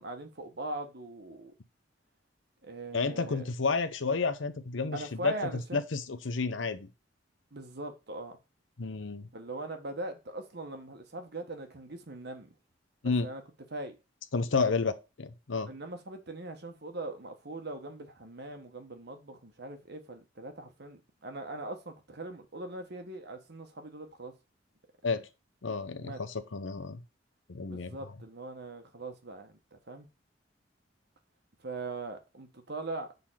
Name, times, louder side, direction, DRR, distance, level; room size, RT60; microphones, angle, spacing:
voice 1, 0.0-1.5 2.6-3.5 4.9-5.8 7.5-8.4 9.3-12.5 13.2-13.4 13.7-13.9 15.7-24.3 26.0-26.2 27.7-30.1 31.6-33.1, right 2 dB, 60° right, 1.3 m, -41 dB
voice 2, 2.9-5.3 5.7-6.9 8.8-9.3 13.0-13.3 14.3-14.9 15.2-15.7 25.0-25.2 25.6-27.0 27.5-27.9, left 4 dB, 85° left, 0.8 m, -31 dB
6.7 x 3.9 x 5.7 m
head